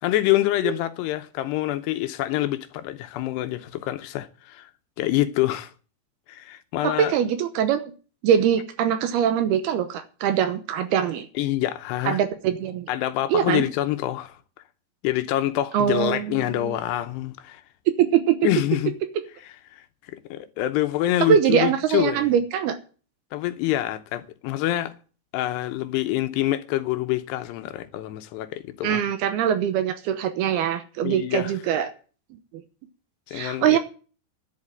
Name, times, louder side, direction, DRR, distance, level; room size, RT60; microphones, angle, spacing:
voice 1, 0.0-4.7 5.0-5.7 6.3-7.1 11.4-12.2 12.9-14.3 15.0-17.6 18.4-18.9 19.7-19.8 20.1-22.3 23.3-24.9 25.3-29.0 31.0-31.5 33.3-33.8, left 14 dB, 80° left, 2.7 m, -26 dB
voice 2, 6.8-7.8 8.2-11.3 12.0-12.9 13.3-13.6 15.7-16.8 17.9-18.5 21.2-22.8 28.8-31.9 33.3-33.8, right 9 dB, 75° right, 2.6 m, -22 dB
11.0 x 7.9 x 8.8 m
omnidirectional pair, 5.1 m